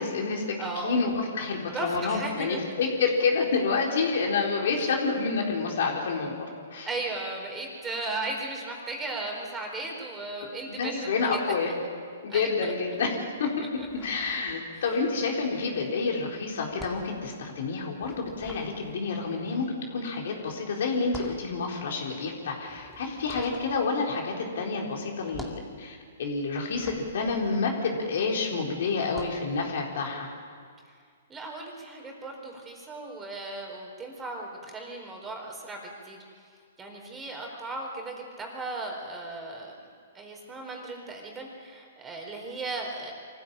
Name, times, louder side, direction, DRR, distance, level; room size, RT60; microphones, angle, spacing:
voice 1, 0.0-0.6 0.8-6.9 10.7-11.7 12.2-13.1 13.4-13.7 14.0-19.6 19.9-30.3, left 4 dB, 65° left, 0 dB, 4.0 m, -28 dB
voice 2, 0.6-1.0 1.6-2.8 6.8-11.4 12.3-12.7 13.8-13.9 14.7-14.8 31.3-36.2 36.8-39.8 40.1-43.1, right 2 dB, 15° right, 1 dB, 4.3 m, -36 dB
sound 1, 13.7-15.0 15.2-28.4 29.0-29.5, equal, ahead, 2.3 m, -47 dB
24.0 x 15.0 x 8.8 m, 2.1 s
hypercardioid pair, 130°, 0 cm